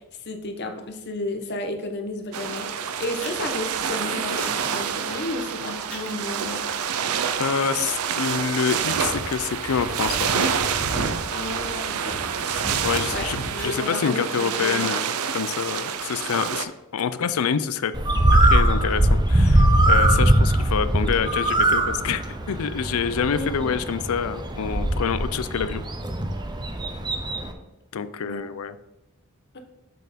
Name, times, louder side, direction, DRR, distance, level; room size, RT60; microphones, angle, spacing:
voice 1, 0.0-6.6 11.3-12.2 13.1-14.9 23.3-23.7 28.2-28.4 29.5-29.6, left 2 dB, 50° left, 5 dB, 0.9 m, -32 dB
sound 1, 2.3-16.6, right 7 dB, 80° right, 0.5 m, -28 dB
sound 2, 3.1-13.6, equal, 5° left, 1.9 m, -38 dB
voice 2, 7.4-10.5 12.8-13.4 13.6-17.9 18.3-25.8 27.9-28.8, left 6 dB, 70° left, 13 dB, 0.4 m, -27 dB
Bird, 17.9-27.5, right 1 dB, 20° right, 0.6 m, -21 dB
6.5 x 4.3 x 5.1 m, 0.92 s
head